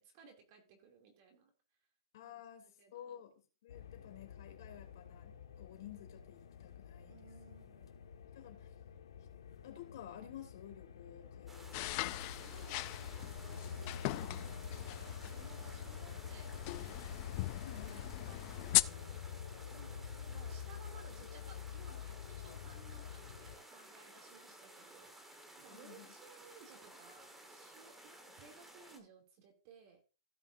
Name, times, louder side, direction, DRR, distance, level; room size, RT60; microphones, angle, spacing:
voice 1, 0.0-1.5 2.2-3.2 7.1-7.9 12.3-19.2 19.7-30.0, right 5 dB, 40° right, 2.5 m, -61 dB
voice 2, 2.1-3.3 3.6-7.2 8.3-8.7 9.6-11.9 12.3-12.5 17.6-18.1 25.7-26.1, left 11 dB, 55° left, 2.8 m, -53 dB
sound 1, 3.7-23.6, left 7 dB, 80° left, 1.5 m, -47 dB
sound 2, 11.5-29.0, right 1 dB, 5° right, 1.4 m, -56 dB
sound 3, 11.7-18.8, left 22 dB, 35° left, 0.3 m, -39 dB
16.0 x 5.9 x 2.6 m
hypercardioid pair, 160°, 3 cm